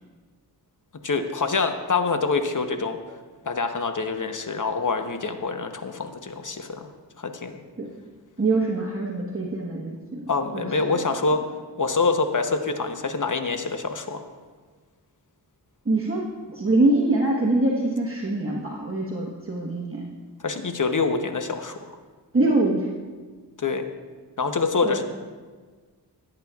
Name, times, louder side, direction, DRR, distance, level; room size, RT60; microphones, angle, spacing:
voice 1, 1.0-3.0 3.5-6.9 7.2-7.6 10.3-11.4 11.8-14.2 20.4-22.0 23.6-23.9 24.4-25.0, left 4 dB, 45° left, 7 dB, 0.8 m, -25 dB
voice 2, 8.4-10.2 10.5-10.7 15.8-20.1 22.3-22.9 24.8-25.0, right 2 dB, 30° right, -4 dB, 1.2 m, -24 dB
16.5 x 8.8 x 2.4 m, 1.4 s
wide cardioid pair, 65°, 42 cm